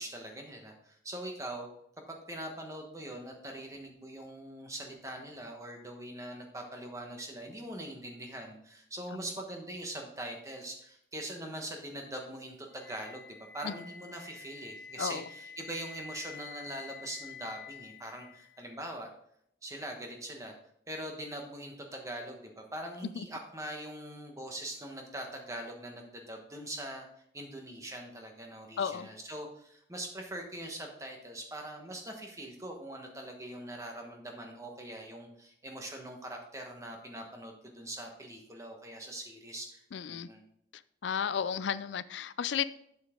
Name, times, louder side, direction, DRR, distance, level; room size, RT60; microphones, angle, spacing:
voice 1, 0.0-1.7 2.1-19.1 19.6-20.5 20.9-27.1 27.3-39.8 40.1-40.4, right 1 dB, 15° right, 2 dB, 1.2 m, -42 dB
Wind instrument woodwind instrument, 12.8-18.7, left 5 dB, 60° left, 0.8 m, -48 dB
voice 2, 28.8-29.1 39.9-40.3 41.0-42.7, left 7 dB, 75° left, 16 dB, 0.4 m, -33 dB
8.1 x 7.0 x 3.7 m, 0.73 s
head